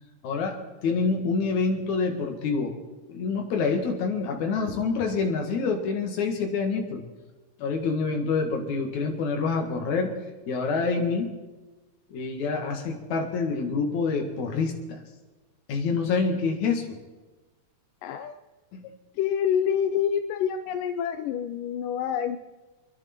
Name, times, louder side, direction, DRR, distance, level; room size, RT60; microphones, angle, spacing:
voice 1, 0.2-0.6 0.8-2.7 3.1-7.0 7.6-10.1 10.5-11.3 12.1-15.0 15.7-17.0 18.7-18.8, left 4 dB, 65° left, 3 dB, 3.1 m, -27 dB
voice 2, 18.0-18.4 19.2-22.4, left 8 dB, 85° left, 7 dB, 2.3 m, -27 dB
27.0 x 11.0 x 4.4 m, 1.2 s
omnidirectional pair, 3.7 m